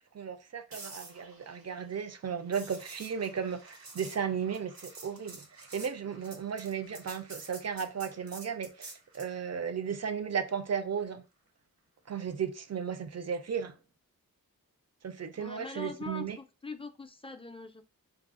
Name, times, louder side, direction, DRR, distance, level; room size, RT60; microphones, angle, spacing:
voice 1, 0.1-11.2 12.1-13.7 15.0-16.4, right 7 dB, 45° right, 0.4 m, -35 dB
sound 1, 0.7-9.4 13.5-13.8, right 3 dB, 75° right, 0.9 m, -49 dB
voice 2, 15.4-17.8, left 3 dB, 15° left, 0.3 m, -42 dB
4.6 x 2.0 x 2.4 m
wide cardioid pair, 90°, 35 cm